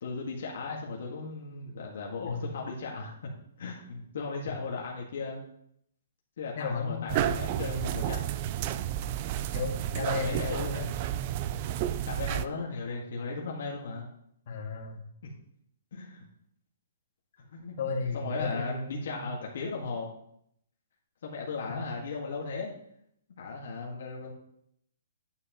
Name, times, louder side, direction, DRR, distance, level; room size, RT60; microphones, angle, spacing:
voice 1, 0.0-3.2 3.6-5.4 6.4-8.3 10.0-10.9 12.0-14.1 15.2-15.3 15.9-16.2 17.5-20.1 21.2-22.7 23.4-24.3, left 4 dB, 55° left, -2 dB, 1.7 m, -36 dB
voice 2, 6.6-7.3 9.5-10.9 14.5-15.0 17.8-19.3, left 4 dB, 40° left, -1 dB, 1.9 m, -34 dB
sound 1, 7.1-12.4, right 11 dB, 30° right, 0.3 m, -31 dB
9.5 x 9.2 x 3.0 m, 0.72 s
hypercardioid pair, 170°, 0 cm